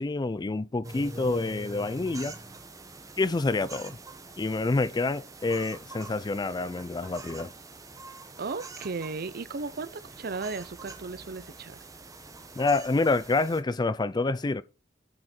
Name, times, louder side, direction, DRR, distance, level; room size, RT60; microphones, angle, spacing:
voice 1, 0.0-2.3 3.2-4.0 4.4-7.5 12.6-14.6, left 3 dB, 25° left, 0.4 m, -27 dB
sound 1, 0.8-13.6, right 2 dB, 20° right, 1.1 m, -45 dB
voice 2, 8.4-11.8, right 4 dB, 55° right, 0.6 m, -35 dB
9.5 x 5.1 x 4.3 m
head